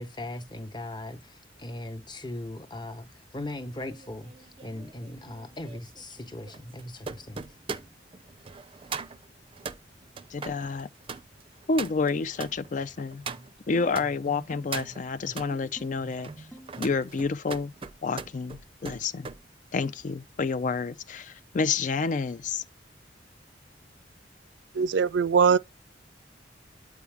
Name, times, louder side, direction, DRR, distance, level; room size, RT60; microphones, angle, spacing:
voice 1, 0.0-7.5, left 1 dB, 25° left, 1.0 m, -39 dB
sound 1, 3.4-14.1 14.5-15.5 16.0-19.4 19.8-20.1, right 5 dB, 30° right, 0.5 m, -41 dB
voice 2, 10.3-10.9 11.7-13.2 13.7-16.3 16.8-17.7 18.0-19.3 19.7-22.6, left 4 dB, 45° left, 0.4 m, -29 dB
sound 2, 13.3-17.1, right 2 dB, ahead, 0.9 m, -47 dB
voice 3, 24.8-25.6, right 6 dB, 85° right, 0.4 m, -21 dB
8.4 x 4.7 x 3.5 m
head